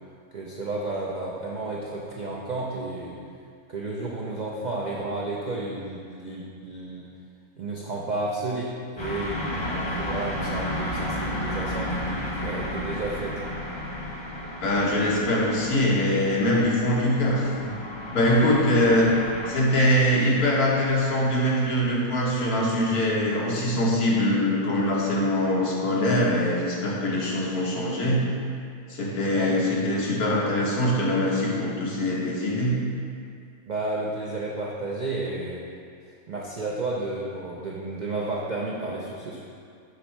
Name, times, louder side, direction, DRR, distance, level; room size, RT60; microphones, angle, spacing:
voice 1, 0.3-3.1 3.7-7.0 7.6-13.3 18.2-18.3 29.3-29.6 33.7-35.6 36.3-39.4, right 2 dB, 75° right, -3 dB, 0.4 m, -32 dB
sound 1, 9.0-19.6, left 1 dB, 30° left, 0.5 m, -33 dB
voice 2, 14.6-17.8 18.1-19.1 19.5-28.2 28.9-32.7, left 1 dB, 80° left, -4 dB, 1.6 m, -23 dB
5.9 x 4.1 x 4.5 m, 2.3 s
omnidirectional pair, 1.6 m